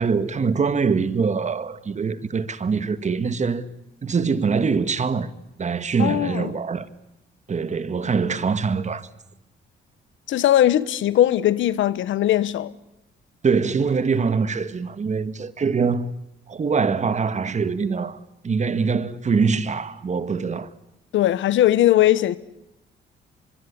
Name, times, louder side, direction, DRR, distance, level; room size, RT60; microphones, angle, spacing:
voice 1, 0.0-3.7 4.0-5.3 5.6-6.9 7.5-9.1 13.4-16.1 16.5-18.2 18.4-20.7, right 5 dB, 35° right, 1.5 m, -23 dB
voice 2, 6.0-6.5 10.3-12.7 21.1-22.4, left 13 dB, 75° left, 1.0 m, -19 dB
23.5 x 23.5 x 9.9 m
cardioid pair, 90°, 20 cm